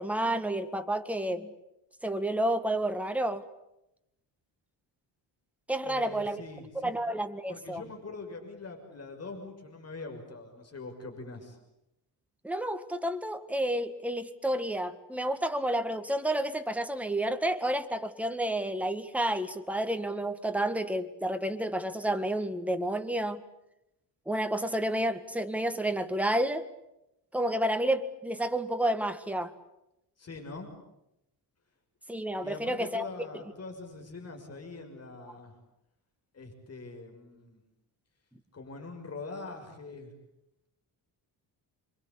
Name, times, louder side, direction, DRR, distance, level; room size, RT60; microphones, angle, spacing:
voice 1, 0.0-1.5 2.0-3.4 5.7-6.4 6.8-7.8 12.4-23.4 24.3-26.7 27.3-29.5 32.1-33.1, right 1 dB, 5° right, 1.8 m, -30 dB
voice 2, 5.8-6.9 7.5-11.6 30.2-30.7 32.4-35.5 36.3-37.6 38.5-40.1, left 3 dB, 35° left, 6.1 m, -43 dB
28.0 x 24.5 x 8.5 m
cardioid pair, 130°, 42 cm